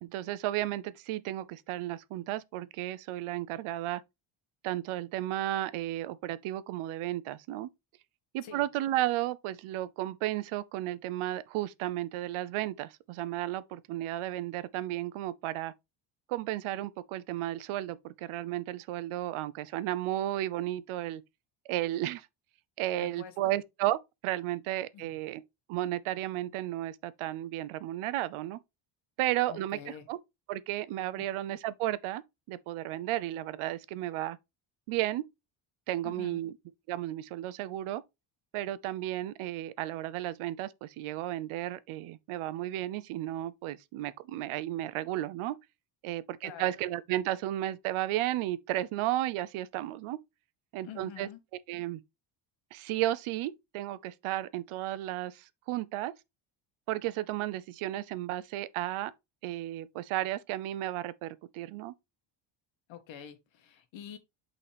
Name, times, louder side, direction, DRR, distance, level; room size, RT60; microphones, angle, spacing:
voice 1, 0.0-4.0 4.6-7.7 8.3-15.7 16.3-21.2 21.7-22.3 22.8-25.4 25.7-28.6 29.2-30.2 30.5-32.2 32.5-34.4 34.9-35.2 35.9-36.5 36.9-38.0 38.5-45.6 46.0-50.2 50.7-51.3 51.7-52.0 52.7-56.1 56.9-59.1 59.4-61.9, right 14 dB, 80° right, 0.7 m, -33 dB
voice 2, 23.0-23.5 24.9-25.2 29.5-30.1 31.2-31.3 36.0-36.4 46.4-46.7 50.8-51.4 62.9-64.2, left 9 dB, 70° left, 1.5 m, -46 dB
8.4 x 4.1 x 3.4 m
cardioid pair, 165°, 49 cm